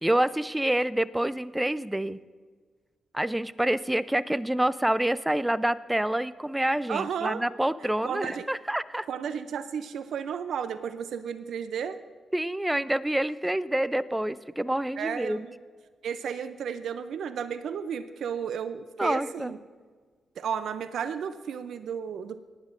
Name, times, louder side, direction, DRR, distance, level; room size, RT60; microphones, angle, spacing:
voice 1, 0.0-2.2 3.1-9.1 12.3-15.5 19.0-19.6, right 1 dB, 10° right, 16 dB, 0.5 m, -27 dB
voice 2, 6.9-7.4 8.0-8.5 9.1-12.0 15.0-15.5 16.0-19.6 20.4-22.4, right 7 dB, 75° right, 11 dB, 0.5 m, -33 dB
18.5 x 10.5 x 2.5 m, 1.5 s
supercardioid pair, 50°, 0 cm